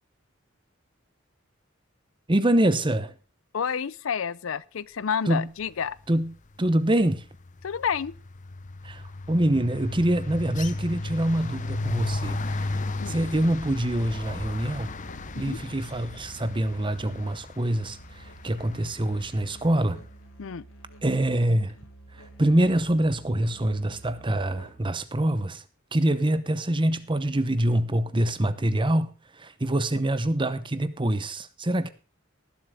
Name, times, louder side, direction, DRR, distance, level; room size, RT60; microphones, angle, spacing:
voice 1, 2.3-3.1 5.3-5.5 6.1-6.3 6.6-7.2 8.8-12.7 13.1-14.9 15.4-20.0 21.0-21.8 22.4-25.6 25.9-31.9, right 1 dB, 25° right, 0.9 m, -25 dB
voice 2, 3.5-6.0 7.6-8.1 13.0-13.1 15.4-15.6 20.4-20.6, left 7 dB, 70° left, 0.5 m, -29 dB
sound 1, 5.9-6.3 6.5-19.7, left 2 dB, 40° left, 0.7 m, -35 dB
Musical instrument, 9.7-25.0, right 2 dB, 90° left, 3.4 m, -49 dB
18.5 x 7.8 x 3.7 m
head